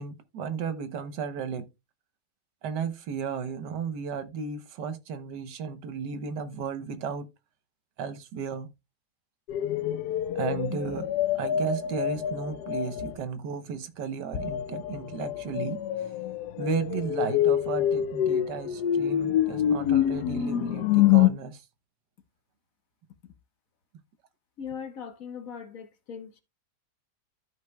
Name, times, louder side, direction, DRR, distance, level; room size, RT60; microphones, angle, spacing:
voice 1, 0.0-1.7 2.6-7.3 8.0-8.7 10.3-11.1 11.3-16.1 16.6-21.6, right 6 dB, 90° right, 1.5 m, -34 dB
sound 1, 9.5-13.2 14.3-21.3, left 11 dB, 75° left, 1.2 m, -26 dB
voice 2, 24.6-26.4, left 7 dB, 60° left, 1.4 m, -39 dB
13.5 x 5.3 x 2.2 m
omnidirectional pair, 1.8 m